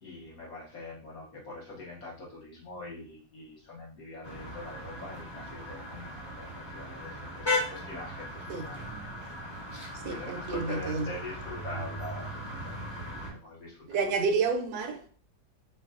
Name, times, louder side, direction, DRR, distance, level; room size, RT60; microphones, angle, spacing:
voice 1, 0.0-9.3 10.1-12.3 12.6-12.9 13.2-14.0, left 2 dB, 65° left, 1.3 m, -43 dB
sound 1, 4.2-13.3, left 1 dB, 20° left, 1.0 m, -37 dB
voice 2, 9.9-11.1 13.9-15.2, right 4 dB, 80° right, 1.1 m, -30 dB
5.2 x 2.2 x 2.4 m
omnidirectional pair, 1.7 m